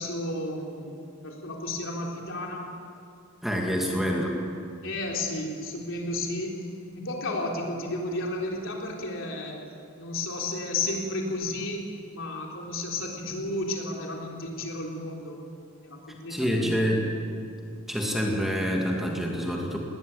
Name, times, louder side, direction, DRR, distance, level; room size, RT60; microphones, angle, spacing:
voice 1, 0.0-2.7 3.7-4.1 4.8-6.7 6.9-15.4 15.8-16.7, left 2 dB, 60° left, 0 dB, 3.8 m, -33 dB
voice 2, 3.4-4.3 16.3-17.0 17.9-19.8, equal, ahead, -1 dB, 2.4 m, -26 dB
20.5 x 19.0 x 8.6 m, 2.4 s
head